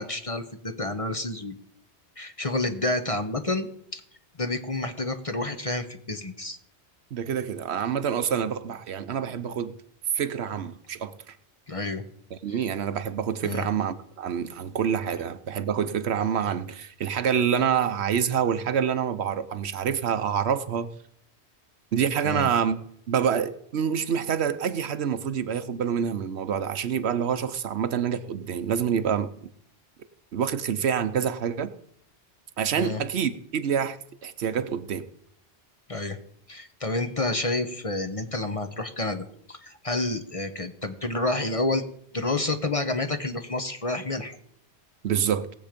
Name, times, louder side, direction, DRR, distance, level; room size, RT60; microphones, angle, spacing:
voice 1, 0.0-1.5 2.2-3.7 3.9-4.0 4.4-6.6 11.7-12.0 12.5-12.6 13.4-13.7 22.2-22.5 32.8-33.0 35.9-36.2 36.5-41.8 42.1-44.4, left 2 dB, 35° left, 1.0 m, -29 dB
voice 2, 7.1-9.7 10.1-11.4 12.3-20.9 21.9-22.8 23.1-29.3 30.3-31.7 32.6-35.1 45.0-45.5, right 8 dB, 70° right, 1.0 m, -27 dB
18.5 x 7.5 x 5.1 m
omnidirectional pair, 1.2 m